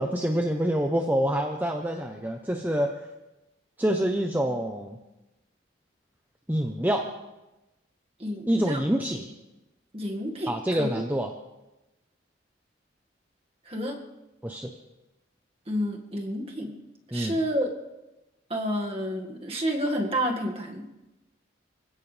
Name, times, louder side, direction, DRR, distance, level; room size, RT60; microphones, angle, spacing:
voice 1, 0.0-2.9 3.8-5.0 6.5-7.1 8.5-9.3 10.5-11.3 14.4-14.7 17.1-17.4, equal, 10° right, 3 dB, 0.8 m, -26 dB
voice 2, 8.2-8.8 9.9-10.5 10.8-11.0 13.7-14.0 15.7-16.7 17.1-17.7 18.5-20.9, equal, 30° right, 1 dB, 1.9 m, -29 dB
25.5 x 16.0 x 3.4 m, 1.0 s
head